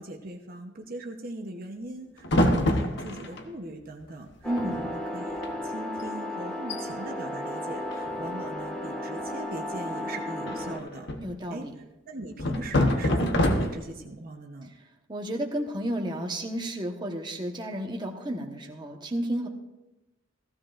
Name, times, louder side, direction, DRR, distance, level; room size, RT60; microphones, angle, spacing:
voice 1, 0.0-11.1 11.5-11.7 12.1-14.7, right 2 dB, 45° right, 2 dB, 0.9 m, -40 dB
sound 1, 2.2-3.4 4.3-4.4 4.6-4.9 5.3-5.5 6.0-6.1 6.5-6.8 7.9-8.5 10.5-11.4 12.4-14.0, left 1 dB, 60° left, 1.0 m, -26 dB
sound 2, 4.4-10.8, left 1 dB, 5° left, 1.7 m, -34 dB
voice 2, 4.4-4.8 11.2-11.7 15.1-19.5, right 1 dB, 20° right, 1 dB, 1.1 m, -32 dB
15.5 x 15.0 x 2.5 m, 0.98 s
head